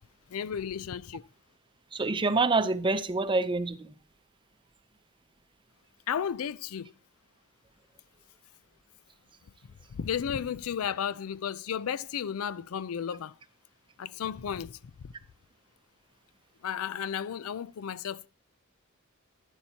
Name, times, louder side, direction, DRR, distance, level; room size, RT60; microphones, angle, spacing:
voice 1, 0.3-1.2 6.1-6.9 9.9-13.4 14.0-15.1 16.6-18.3, left 8 dB, 90° left, 0.4 m, -33 dB
voice 2, 1.9-3.9, right 3 dB, 25° right, 0.6 m, -26 dB
11.5 x 10.0 x 2.8 m
head